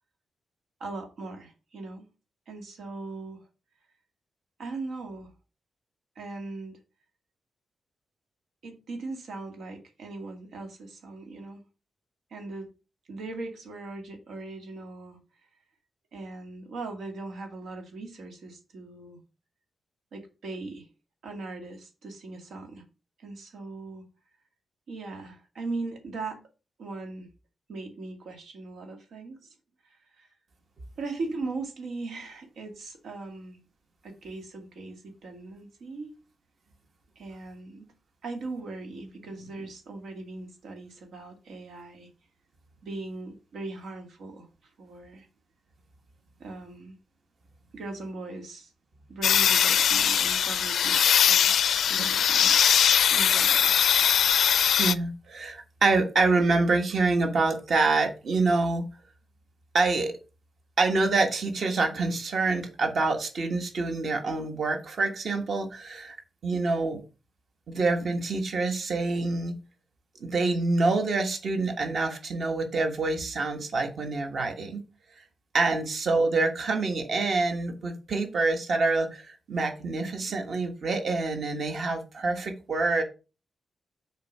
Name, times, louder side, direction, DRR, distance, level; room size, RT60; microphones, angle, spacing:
voice 1, 0.8-2.0 2.5-3.4 4.6-5.3 6.2-6.8 8.6-11.6 12.3-12.7 13.1-15.2 16.1-19.2 20.1-20.9 21.2-22.8 23.2-24.0 24.9-26.4 26.8-27.3 27.7-29.5 29.8-30.3 31.0-33.6 34.0-36.1 37.2-37.9 38.2-42.1 42.8-44.5 44.8-45.3 46.4-47.0 47.7-48.7 49.1-51.5 51.9-52.6 53.1-53.8, right 3 dB, 85° right, 2.1 m, -39 dB
sound 1, 49.2-54.9, left 8 dB, 90° left, 0.4 m, -21 dB
voice 2, 54.8-58.9 59.7-60.2 60.8-66.2 66.4-67.0 67.7-69.6 70.2-74.8 75.5-83.0, right 3 dB, 50° right, 1.5 m, -26 dB
6.6 x 4.5 x 5.5 m
wide cardioid pair, 170°, 0 cm